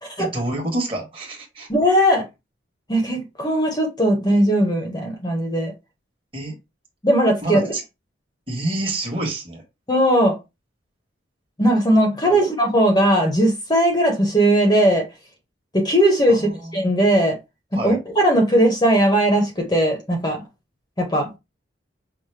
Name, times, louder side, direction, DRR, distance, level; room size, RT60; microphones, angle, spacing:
voice 1, 0.2-1.7 6.3-6.6 7.4-7.8 8.5-9.6 12.2-12.4 16.3-16.9 17.7-18.0, right 1 dB, 30° right, 1.3 m, -28 dB
voice 2, 1.7-2.2 2.9-5.7 7.0-7.7 9.9-10.4 11.6-15.0 15.7-17.4 17.7-20.4 21.0-21.4, right 1 dB, 20° left, 0.9 m, -18 dB
5.6 x 2.1 x 3.3 m
head